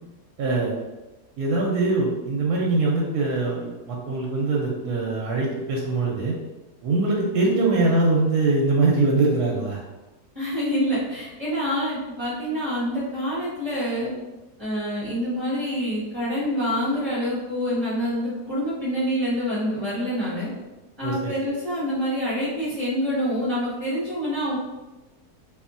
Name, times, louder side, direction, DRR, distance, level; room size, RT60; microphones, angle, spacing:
voice 1, 0.4-0.7 1.4-6.4 6.8-9.8 21.0-21.3, right 3 dB, 75° right, -2 dB, 1.0 m, -22 dB
voice 2, 10.3-14.1 14.6-20.5 21.0-24.6, equal, 20° right, -10 dB, 1.0 m, -26 dB
2.7 x 2.7 x 2.5 m, 1.1 s
omnidirectional pair, 1.8 m